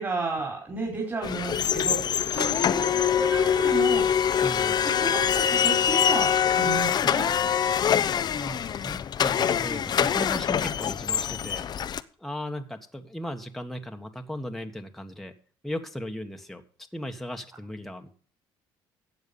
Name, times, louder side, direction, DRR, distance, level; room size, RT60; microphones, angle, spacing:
voice 1, 0.0-4.1 4.8-7.3, right 3 dB, 25° right, -2 dB, 4.8 m, -33 dB
sound 1, 1.2-12.0, left 8 dB, 40° left, 0.6 m, -24 dB
voice 2, 4.4-4.8 8.3-11.8 12.2-15.3 15.6-16.6 16.9-18.1, equal, 5° left, 4 dB, 1.4 m, -37 dB
12.0 x 8.2 x 5.3 m, 0.43 s
cardioid pair, 100°, 10 cm